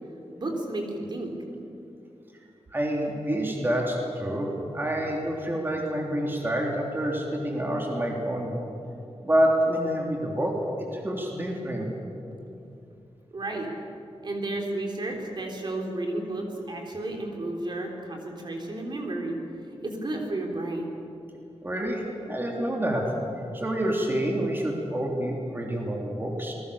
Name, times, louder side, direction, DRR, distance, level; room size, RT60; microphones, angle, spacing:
voice 1, 0.4-1.3 13.3-13.7 14.2-19.4 19.8-20.9, right 2 dB, 45° right, 1 dB, 3.5 m, -32 dB
voice 2, 2.7-8.5 9.2-10.5 10.9-11.9 21.6-23.1 23.5-26.5, right 1 dB, 20° right, -1 dB, 3.3 m, -27 dB
26.5 x 21.5 x 7.0 m, 2.7 s
wide cardioid pair, 150°, 11 cm